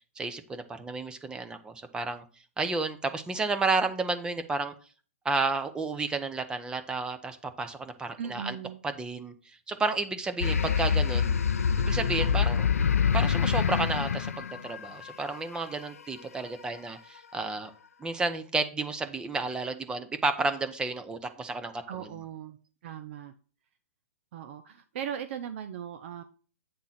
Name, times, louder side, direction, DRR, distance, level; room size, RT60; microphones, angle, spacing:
voice 1, 0.2-2.2 2.6-4.7 5.2-8.6 8.8-11.4 11.8-12.7 13.1-17.7 18.0-22.1, right 3 dB, 10° right, 8 dB, 0.9 m, -31 dB
voice 2, 8.2-8.8 21.9-22.6 22.8-23.3 24.3-26.2, right 8 dB, 55° right, 9 dB, 0.7 m, -38 dB
sound 1, 10.4-15.4, left 7 dB, 85° left, 0.4 m, -26 dB
8.6 x 3.8 x 5.8 m, 0.39 s
hypercardioid pair, 125°, 8 cm